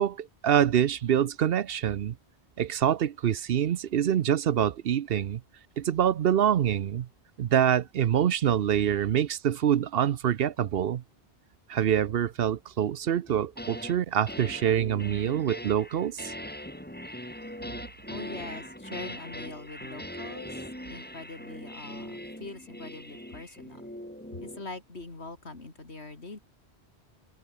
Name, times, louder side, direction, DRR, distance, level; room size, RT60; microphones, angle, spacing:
voice 1, 0.0-2.1 2.6-5.4 5.8-7.1 7.4-11.0 11.7-16.3, right 9 dB, 65° right, 0.8 m, -25 dB
sound 1, 13.3-14.0 14.3-24.7, equal, 10° left, 3.7 m, -41 dB
voice 2, 18.1-23.8 24.3-26.4, left 3 dB, 80° left, 3.6 m, -43 dB
omnidirectional pair, 1.1 m